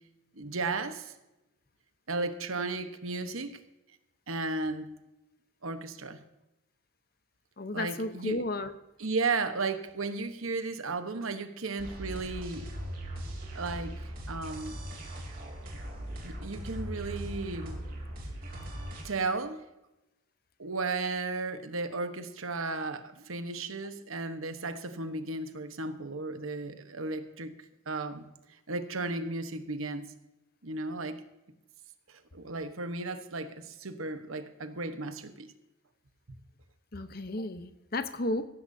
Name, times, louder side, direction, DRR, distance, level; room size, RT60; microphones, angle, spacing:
voice 1, 0.4-1.1 2.1-3.6 4.3-4.9 5.6-6.2 7.7-8.4 9.0-12.6 13.5-13.9 14.3-14.8 16.2-17.8 19.0-19.6 20.6-27.5 27.9-28.3 28.7-30.1 30.6-31.2 32.1-35.5, right 3 dB, 80° right, 9 dB, 1.2 m, -34 dB
voice 2, 7.6-8.7 36.9-38.4, left 1 dB, 45° left, 10 dB, 0.9 m, -33 dB
sound 1, 11.8-19.0, right 1 dB, 45° right, 3.4 m, -39 dB
16.0 x 15.0 x 2.8 m, 0.96 s
head